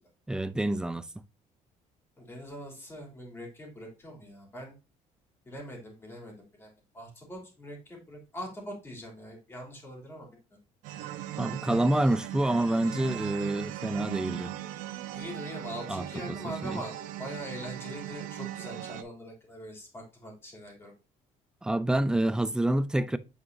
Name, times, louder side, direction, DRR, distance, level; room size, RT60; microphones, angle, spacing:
voice 1, 0.3-1.0 11.4-14.5 15.9-16.4 16.6-16.8 21.6-23.2, right 1 dB, 5° right, 0.4 m, -27 dB
voice 2, 2.2-4.7 5.4-6.7 6.9-10.3 11.0-11.1 15.1-20.9, equal, 15° left, 2.9 m, -42 dB
sound 1, 10.8-19.0, right 13 dB, 85° right, 0.7 m, -39 dB
8.6 x 4.7 x 2.6 m
cardioid pair, 145°, 14 cm